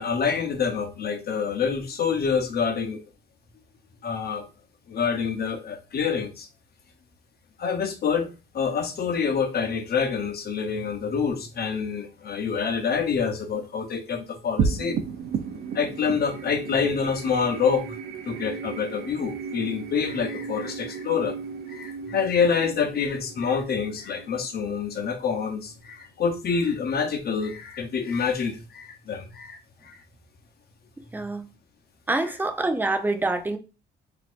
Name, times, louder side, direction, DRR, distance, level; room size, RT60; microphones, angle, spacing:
voice 1, 0.0-3.0 4.0-4.5 4.9-6.5 7.6-15.0 15.7-18.0 18.2-21.4 21.7-30.0, left 6 dB, 50° left, 0.8 m, -27 dB
sound 1, 14.6-25.2, right 6 dB, 60° right, 0.5 m, -34 dB
voice 2, 31.1-31.5 32.1-33.6, right 2 dB, 10° right, 0.5 m, -26 dB
4.1 x 2.7 x 2.5 m
cardioid pair, 90°, 20 cm